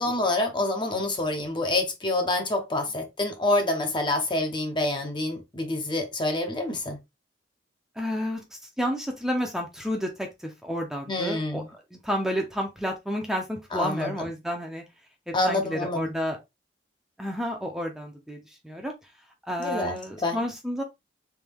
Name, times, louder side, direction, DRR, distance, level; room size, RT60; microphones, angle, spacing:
voice 1, 0.0-7.0 11.1-11.7 13.7-14.1 15.3-16.1 19.6-20.4, left 2 dB, 25° left, 0.9 m, -27 dB
voice 2, 8.0-8.4 8.8-11.6 11.9-14.8 15.3-16.4 17.2-18.9 19.5-20.8, equal, 5° right, 0.8 m, -30 dB
3.6 x 3.5 x 3.5 m
head